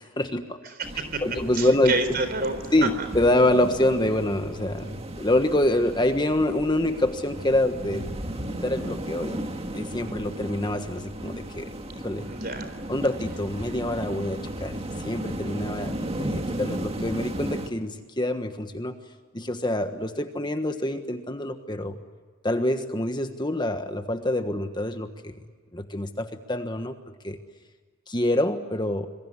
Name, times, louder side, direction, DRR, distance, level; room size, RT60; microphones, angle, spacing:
voice 1, 0.0-0.6 1.2-1.9 2.7-8.1 8.6-9.5 9.7-11.7 12.0-12.3 12.9-19.0 19.3-22.0 22.4-25.3 25.7-27.0 27.2-27.4 28.1-29.1, left 1 dB, 20° left, 7 dB, 1.3 m, -26 dB
voice 2, 0.7-1.2 1.5-2.7 12.2-12.7, right 2 dB, 45° right, 10 dB, 4.0 m, -29 dB
sound 1, 0.8-17.7, right 1 dB, 30° right, 2.0 m, -35 dB
27.0 x 22.0 x 9.8 m, 1.5 s
head